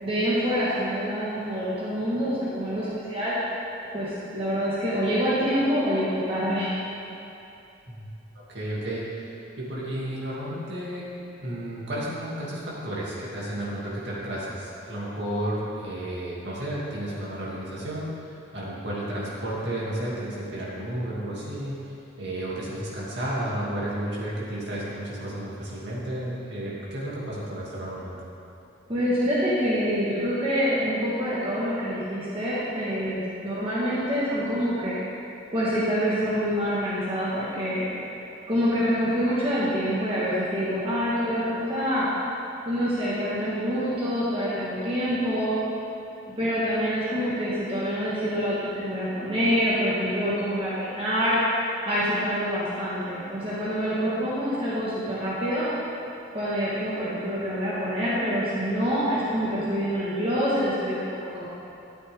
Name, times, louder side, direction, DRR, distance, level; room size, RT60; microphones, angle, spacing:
voice 1, 0.0-3.3 3.9-6.7 28.9-35.0 35.5-37.9 38.5-42.1 42.6-45.6 46.4-51.4 51.8-55.7 56.3-61.5, equal, 30° right, -9 dB, 1.6 m, -26 dB
voice 2, 8.5-11.0 11.4-18.1 18.5-21.8 22.2-28.2, right 1 dB, 60° right, -7 dB, 2.6 m, -32 dB
13.0 x 8.2 x 3.6 m, 2.7 s
head